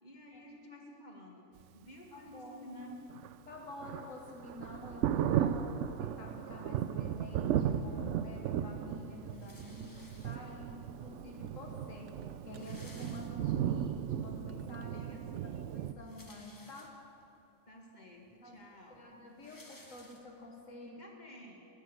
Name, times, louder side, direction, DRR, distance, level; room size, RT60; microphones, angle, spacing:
voice 1, 0.0-3.0 11.4-11.8 14.8-15.7 17.7-19.0 20.8-21.7, equal, 35° left, 0 dB, 1.9 m, -52 dB
voice 2, 2.1-2.7 3.5-15.1 15.4-17.0 18.4-18.6 18.9-21.0, left 1 dB, 75° left, 0 dB, 1.6 m, -49 dB
Thunder, 3.1-15.9, right 9 dB, 70° right, 0.8 m, -36 dB
sound 1, 7.2-12.9, right 6 dB, 35° right, 0.5 m, -57 dB
sound 2, 9.3-10.7 11.6-11.7 11.9-12.0 12.2-13.8 14.3-14.4 15.8-17.3 17.9-18.0 18.3-20.6, left 1 dB, 15° left, 1.0 m, -58 dB
18.0 x 6.6 x 7.8 m, 2.8 s
omnidirectional pair, 1.4 m